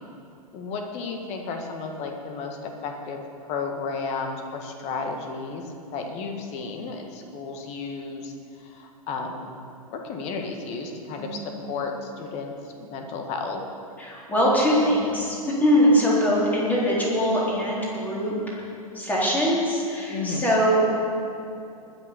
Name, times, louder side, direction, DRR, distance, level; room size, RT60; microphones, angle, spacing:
voice 1, 0.5-3.2 3.5-9.5 9.9-13.6 20.1-20.5, left 4 dB, 35° left, 4 dB, 1.8 m, -33 dB
voice 2, 11.2-11.5 14.0-18.6 18.9-20.9, equal, 10° left, -5 dB, 3.8 m, -22 dB
19.5 x 6.7 x 6.8 m, 2.6 s
figure-of-eight pair, 100°, 19 cm